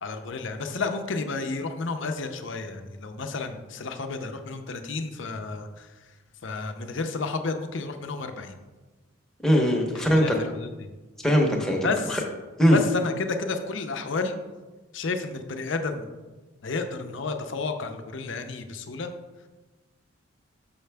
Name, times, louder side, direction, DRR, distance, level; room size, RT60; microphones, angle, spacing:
voice 1, 0.0-5.9 6.4-8.6 9.9-10.9 11.8-12.2 12.7-14.4 14.9-16.1 16.6-19.1, left 3 dB, 65° left, 6 dB, 0.6 m, -31 dB
voice 2, 9.4-10.4 11.2-12.2 12.6-12.8, equal, 5° left, -1 dB, 0.8 m, -21 dB
6.6 x 5.7 x 3.4 m, 1.2 s
head